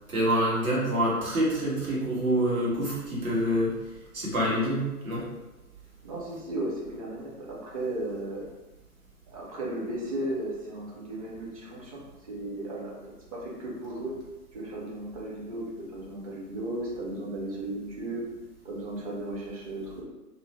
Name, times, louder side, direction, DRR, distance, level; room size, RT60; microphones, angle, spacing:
voice 1, 0.1-3.8 4.1-5.3, equal, 60° right, -6 dB, 1.3 m, -26 dB
voice 2, 6.0-8.5 9.3-13.0 13.3-14.1 14.5-15.6 15.9-18.2 18.6-20.0, right 1 dB, 25° right, -4 dB, 0.5 m, -35 dB
2.5 x 2.0 x 3.0 m, 1.1 s
figure-of-eight pair, 125°, 46 cm